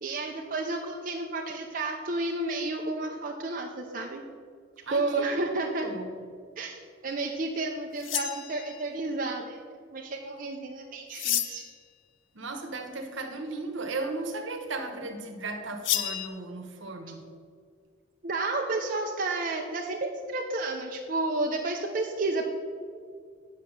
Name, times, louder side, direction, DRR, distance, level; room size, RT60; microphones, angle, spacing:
voice 1, 0.0-4.2 4.9-5.9 6.6-9.6 9.9-11.7 18.2-22.4, right 2 dB, 45° right, 1 dB, 0.6 m, -31 dB
voice 2, 4.9-6.2 12.3-17.3, right 2 dB, 70° right, 6 dB, 1.0 m, -36 dB
sound 1, 8.0-8.9 11.1-11.8 15.8-16.3, left 12 dB, 70° left, 0.5 m, -30 dB
8.5 x 5.6 x 6.3 m, 2.1 s
head